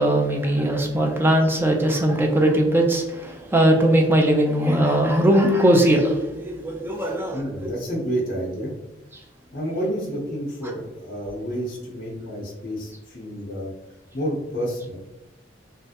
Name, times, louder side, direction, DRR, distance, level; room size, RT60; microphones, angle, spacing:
voice 1, 0.0-7.7, right 1 dB, 10° right, 2 dB, 0.4 m, -20 dB
voice 2, 7.0-8.7 9.5-13.7 14.1-15.0, equal, 50° left, -3 dB, 0.7 m, -30 dB
3.2 x 2.4 x 2.7 m, 1.0 s
head